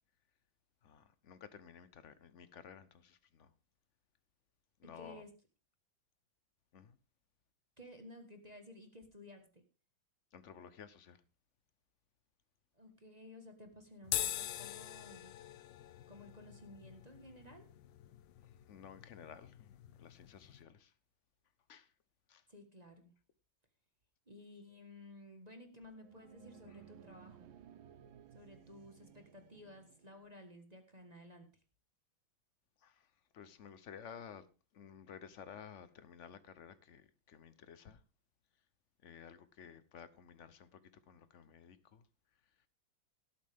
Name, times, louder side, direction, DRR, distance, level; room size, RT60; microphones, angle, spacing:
voice 1, 0.8-3.5 4.8-5.2 6.7-7.0 10.3-11.2 18.4-20.9 21.7-21.9 22.3-22.4 32.8-33.1 33.3-34.5 34.7-38.0 39.0-42.0, left 7 dB, 55° left, 0.9 m, -54 dB
voice 2, 4.8-5.3 7.8-9.6 12.7-15.4 16.1-17.7 22.5-23.1 24.3-27.5 28.3-31.5, left 1 dB, 20° right, 1.5 m, -55 dB
sound 1, 14.0-20.6, left 12 dB, 75° left, 1.4 m, -44 dB
sound 2, 25.8-30.5, right 9 dB, 85° right, 1.6 m, -59 dB
17.5 x 8.6 x 3.5 m
omnidirectional pair, 2.1 m